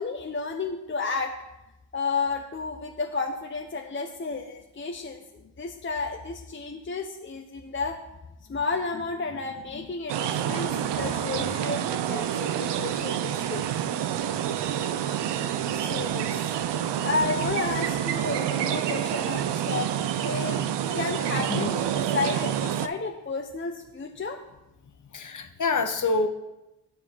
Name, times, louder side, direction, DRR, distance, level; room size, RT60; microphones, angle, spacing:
voice 1, 0.0-1.3 1.9-8.0 8.5-13.7 15.7-16.3 17.0-19.9 20.2-20.6 20.9-24.4, left 4 dB, 25° left, 3 dB, 0.9 m, -32 dB
sound 1, 10.1-22.9, right 10 dB, 65° right, 0.7 m, -28 dB
voice 2, 21.3-21.7 25.1-26.3, left 3 dB, 40° left, 7 dB, 1.3 m, -27 dB
9.1 x 5.1 x 5.5 m, 0.94 s
supercardioid pair, 60°, 45 cm